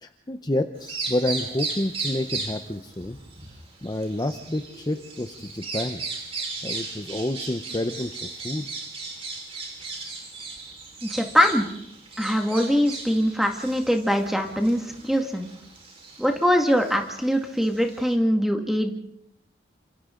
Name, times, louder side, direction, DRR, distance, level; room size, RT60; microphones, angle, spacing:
voice 1, 0.0-3.2 3.8-6.0 6.6-8.6, left 1 dB, 20° left, 7 dB, 0.8 m, -29 dB
Bird vocalization bird call bird song, 0.8-18.1, right 3 dB, 35° right, 4.7 m, -37 dB
voice 2, 11.0-11.7 12.2-15.5 16.2-18.9, equal, ahead, 3 dB, 2.0 m, -22 dB
28.5 x 27.0 x 3.9 m, 0.77 s
head